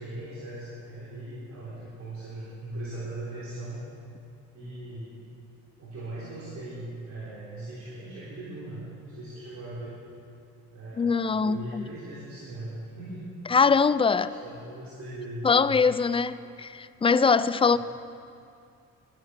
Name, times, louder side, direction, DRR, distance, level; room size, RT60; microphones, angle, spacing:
voice 1, 0.0-3.8 4.5-5.2 5.8-9.9 10.7-13.3 14.3-15.8 17.7-17.8, right 1 dB, 65° right, -9 dB, 3.9 m, -39 dB
voice 2, 11.0-11.8 13.5-14.3 15.4-17.8, left 5 dB, 20° left, 15 dB, 0.4 m, -22 dB
13.0 x 11.0 x 6.5 m, 2.5 s
cardioid pair, 90°, 30 cm